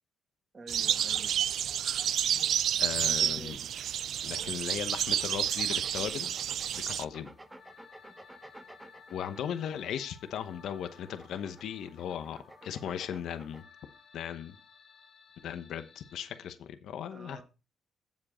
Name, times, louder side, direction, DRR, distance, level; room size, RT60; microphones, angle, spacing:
voice 1, 0.5-1.4 3.0-3.7 17.1-17.4, right 2 dB, 35° right, 2.1 m, -48 dB
sound 1, 0.7-7.1, right 10 dB, 70° right, 0.3 m, -30 dB
voice 2, 2.8-3.6 4.2-6.3 6.9-7.3 9.1-13.6 14.1-14.6 15.4-17.4, left 9 dB, 75° left, 0.9 m, -37 dB
sound 2, 4.5-16.5, left 6 dB, 40° left, 1.6 m, -58 dB
sound 3, 5.0-10.0 10.6-13.6, right 1 dB, 10° right, 0.9 m, -52 dB
7.6 x 7.4 x 4.3 m
cardioid pair, 90°, 0 cm